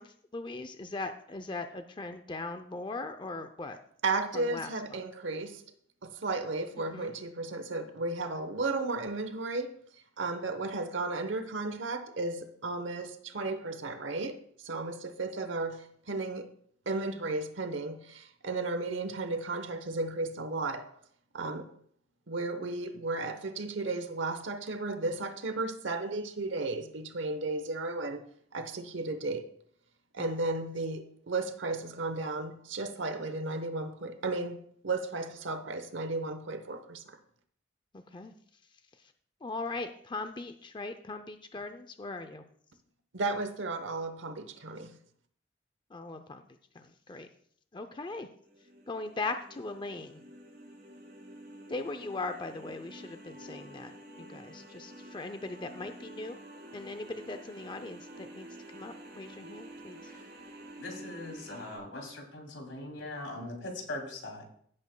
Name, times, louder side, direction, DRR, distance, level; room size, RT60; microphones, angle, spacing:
voice 1, 0.0-3.8 4.3-5.0 6.8-7.1 30.2-30.4 37.9-38.3 39.4-42.4 45.9-46.4 46.7-47.3 47.7-48.3 48.9-50.2 51.7-53.9 54.2-56.4 56.7-58.5 58.7-60.1, left 3 dB, 25° left, 0.5 m, -39 dB
voice 2, 4.0-5.6 6.0-9.7 10.2-16.5 16.9-20.9 21.3-21.7 22.3-28.3 28.5-29.4 30.1-37.2 43.1-45.0, right 3 dB, 80° right, 1.0 m, -34 dB
sound 1, 48.4-61.8, right 1 dB, 55° right, 4.3 m, -49 dB
voice 3, 60.8-64.4, left 2 dB, 85° left, 2.8 m, -41 dB
16.5 x 8.6 x 2.2 m
head